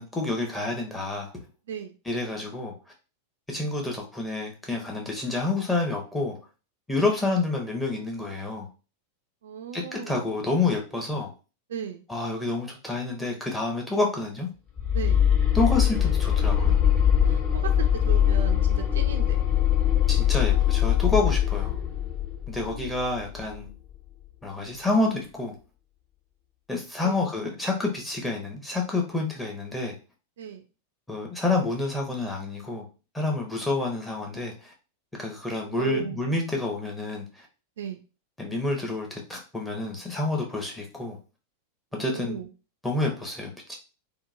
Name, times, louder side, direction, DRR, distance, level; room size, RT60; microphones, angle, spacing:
voice 1, 0.0-1.3 2.1-2.7 3.5-6.4 6.9-8.7 9.7-11.3 12.1-14.5 15.5-16.8 20.1-21.8 22.5-23.7 24.4-25.5 26.7-29.9 31.1-32.8 33.1-34.7 35.2-37.5 38.4-41.2 41.9-42.4 42.8-43.8, left 2 dB, 10° left, 0 dB, 0.8 m, -28 dB
voice 2, 9.4-10.3 11.7-12.0 14.9-15.2 17.2-17.7 18.0-19.4 22.7-23.3 27.0-27.2 30.4-30.6 35.8-36.2 37.8-38.0 41.9-42.5, right 8 dB, 60° right, 6 dB, 0.3 m, -36 dB
sound 1, 14.8-23.7, left 10 dB, 35° left, 1.2 m, -22 dB
2.9 x 2.1 x 2.5 m, 0.33 s
figure-of-eight pair, 90°, 0 cm